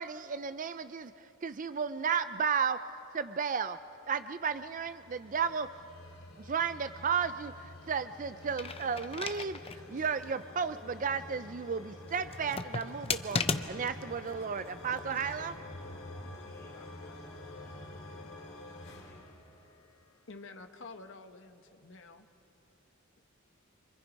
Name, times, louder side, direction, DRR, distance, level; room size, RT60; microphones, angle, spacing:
voice 1, 0.0-2.8 3.1-3.8 4.1-5.7 6.4-13.4 13.7-15.6, right 6 dB, 40° right, 12 dB, 0.5 m, -33 dB
sound 1, 4.2-20.3, left 1 dB, 90° left, 2.9 m, -49 dB
sound 2, 8.4-9.8 10.2-10.3 12.2-14.0 14.9-15.4, left 4 dB, 30° left, 0.8 m, -35 dB
voice 2, 16.4-18.0 19.0-19.6, left 2 dB, 15° left, -3 dB, 4.8 m, -64 dB
voice 3, 20.3-22.3, left 3 dB, 65° left, 7 dB, 1.1 m, -49 dB
28.0 x 25.5 x 5.3 m, 2.8 s
head